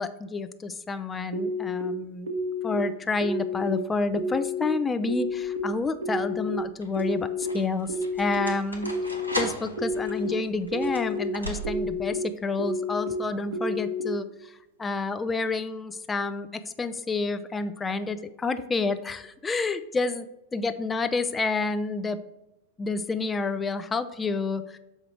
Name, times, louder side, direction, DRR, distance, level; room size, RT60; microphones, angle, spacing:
voice 1, 0.0-2.3 2.6-8.9 9.3-20.3 20.5-22.2 22.8-24.8, left 3 dB, 15° left, 10 dB, 0.4 m, -29 dB
sound 1, 1.3-1.8 2.3-2.8 3.2-3.7 4.1-4.6 5.1-5.6 6.0-6.5 7.0-7.4 7.9-8.4 8.8-9.3 9.8-10.3 10.7-11.2 11.6-12.1 12.6-13.1 13.5-14.0, left 2 dB, 70° right, 1.1 m, -30 dB
sound 2, 5.2-5.7 6.6-12.1, right 1 dB, 90° left, 1.1 m, -37 dB
6.4 x 4.8 x 4.6 m, 0.92 s
figure-of-eight pair, 90°, 0 cm